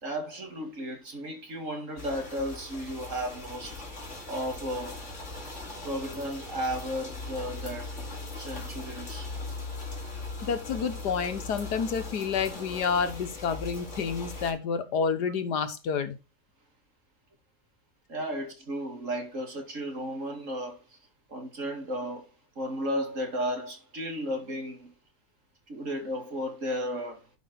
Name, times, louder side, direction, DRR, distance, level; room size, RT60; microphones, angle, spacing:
voice 1, 0.0-3.8 4.3-5.0 5.8-7.9 8.4-9.3 18.1-20.8 21.3-22.3 22.6-24.9 25.7-27.2, equal, 50° right, 2.6 m, -34 dB
sound 1, 2.0-14.5, left 3 dB, 45° left, 3.0 m, -39 dB
voice 2, 10.4-16.2, left 6 dB, 80° left, 1.7 m, -29 dB
11.5 x 5.4 x 4.0 m
omnidirectional pair, 1.7 m